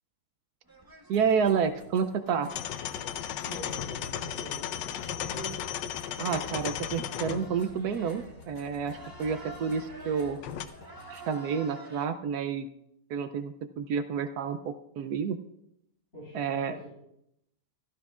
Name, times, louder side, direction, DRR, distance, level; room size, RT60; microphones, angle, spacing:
sound 1, 0.7-12.1, right 2 dB, 15° right, 0.8 m, -51 dB
sound 2, 1.1-11.5, left 3 dB, 60° left, 2.6 m, -55 dB
voice 1, 1.1-2.5 6.2-10.4 11.1-12.7 13.1-15.4 16.3-16.8, right 6 dB, 70° right, 10 dB, 1.0 m, -29 dB
sound 3, 2.5-10.7, left 9 dB, 80° left, 1.3 m, -37 dB
voice 2, 3.4-4.8 5.2-5.6 16.1-16.9, right 1 dB, 40° left, -7 dB, 4.5 m, -44 dB
15.5 x 12.5 x 2.4 m, 0.79 s
omnidirectional pair, 1.9 m